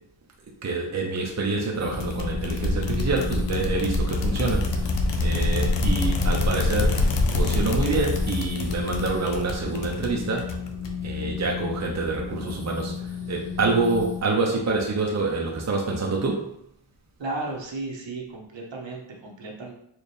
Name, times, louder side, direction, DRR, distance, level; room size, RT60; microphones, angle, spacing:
voice 1, 0.6-10.6 11.0-16.6, right 3 dB, 35° right, -1 dB, 0.7 m, -27 dB
sound 1, 1.7-14.2, left 7 dB, 40° left, 1.4 m, -34 dB
sound 2, 1.9-11.2, left 2 dB, 60° left, 0.7 m, -25 dB
voice 2, 17.2-19.7, right 2 dB, 60° right, -1 dB, 1.0 m, -34 dB
4.3 x 2.5 x 3.3 m, 0.73 s
cardioid pair, 65°, 49 cm